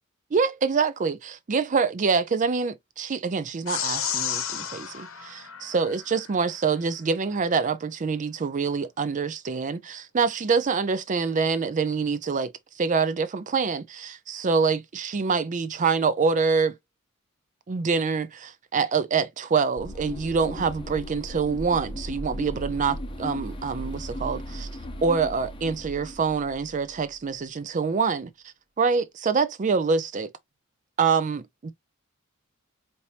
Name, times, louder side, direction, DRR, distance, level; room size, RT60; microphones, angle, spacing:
voice 1, 0.3-16.8 17.7-24.7 25.0-28.3 28.8-30.3 31.0-31.7, right 5 dB, 35° right, 0.4 m, -25 dB
sound 1, 3.7-6.3, left 8 dB, 70° left, 0.9 m, -32 dB
sound 2, 19.8-27.2, equal, 25° left, 0.7 m, -37 dB
4.4 x 2.7 x 3.2 m
head